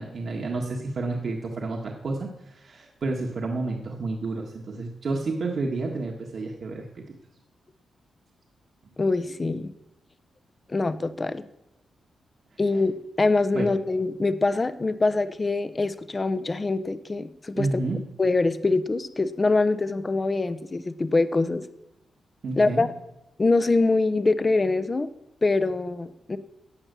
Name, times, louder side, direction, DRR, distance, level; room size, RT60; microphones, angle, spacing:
voice 1, 0.0-7.0 13.5-13.7 17.6-18.0 22.4-22.8, right 3 dB, 50° right, 1 dB, 1.6 m, -30 dB
voice 2, 9.0-9.7 10.7-11.4 12.6-17.7 18.2-21.6 22.6-22.9 23.4-25.1 25.4-26.4, left 3 dB, 25° left, 12 dB, 0.7 m, -24 dB
14.5 x 8.9 x 6.9 m, 0.93 s
wide cardioid pair, 140°, 0 cm